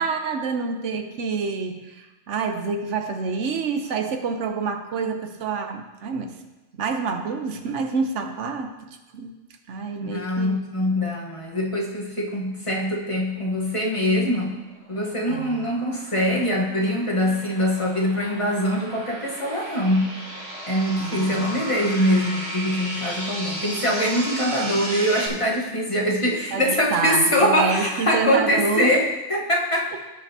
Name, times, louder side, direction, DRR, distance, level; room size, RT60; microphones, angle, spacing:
voice 1, 0.0-6.4 6.8-9.3 9.7-10.6 15.3-15.7 21.0-21.6 26.5-28.9, right 5 dB, 75° right, 6 dB, 1.1 m, -27 dB
voice 2, 10.0-14.6 14.9-20.1 20.7-30.0, equal, 25° left, -3 dB, 1.2 m, -23 dB
sound 1, 14.6-25.3, right 1 dB, 60° right, 1.4 m, -35 dB
16.0 x 5.6 x 2.8 m, 1.1 s
omnidirectional pair, 1.3 m